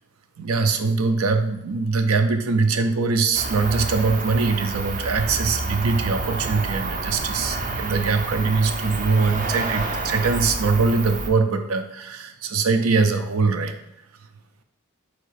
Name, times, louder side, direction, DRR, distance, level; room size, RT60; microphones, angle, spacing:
voice 1, 0.4-13.8, right 4 dB, 85° right, 7 dB, 0.5 m, -22 dB
Cricket, 3.3-11.3, right 2 dB, 40° right, 0.5 m, -29 dB
3.9 x 2.9 x 4.6 m, 0.82 s
head